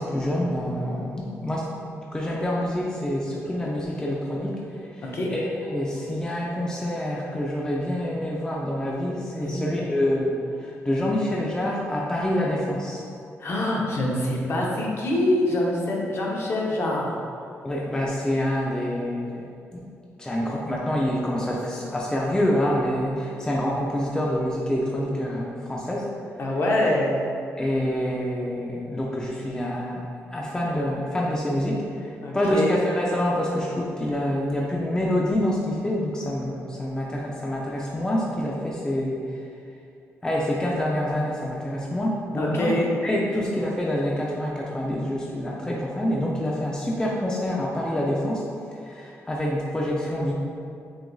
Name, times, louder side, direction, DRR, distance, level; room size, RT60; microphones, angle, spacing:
voice 1, 0.0-1.7 2.1-4.5 5.0-13.0 17.6-19.4 19.7-19.8 20.2-26.1 27.6-30.0 30.3-39.2 40.2-42.7 43.0-48.4 48.8-50.3, left 1 dB, 15° left, -3 dB, 0.5 m, -26 dB
voice 2, 5.0-5.3 9.4-9.6 13.4-17.2 26.4-27.2 32.2-32.7 42.4-42.9 43.3-43.4, left 1 dB, 50° left, -3 dB, 0.8 m, -25 dB
6.0 x 2.5 x 2.3 m, 2.5 s
cardioid pair, 85°, 5 cm